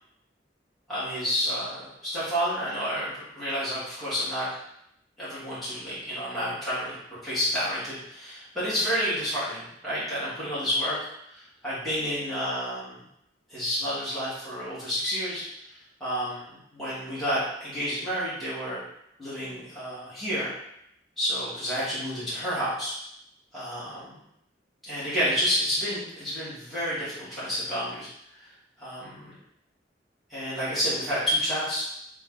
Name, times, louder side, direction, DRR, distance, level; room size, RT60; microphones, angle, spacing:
voice 1, 0.9-4.5 5.2-6.9 7.2-11.0 11.3-13.0 13.5-15.4 16.0-16.4 16.7-18.8 19.2-20.5 21.2-22.9 23.5-24.2 24.8-28.1 28.4-28.5 28.8-29.3 30.3-32.0, equal, ahead, -12 dB, 1.4 m, -30 dB
3.6 x 2.3 x 3.7 m, 0.77 s
head